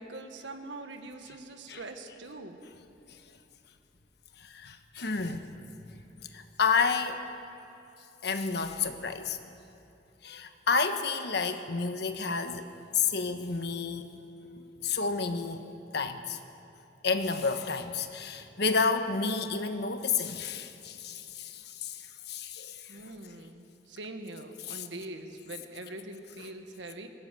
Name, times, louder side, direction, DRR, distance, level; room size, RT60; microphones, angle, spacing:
voice 1, 0.0-2.6 13.3-13.5 14.6-15.0 18.5-18.6 22.9-27.1, right 2 dB, 80° right, 1.7 m, -43 dB
voice 2, 4.4-5.5 6.3-7.2 8.2-9.4 10.2-14.1 14.8-15.6 15.9-16.4 17.0-22.9 24.7-24.9, left 5 dB, 65° left, 1.3 m, -30 dB
21.0 x 17.0 x 7.7 m
head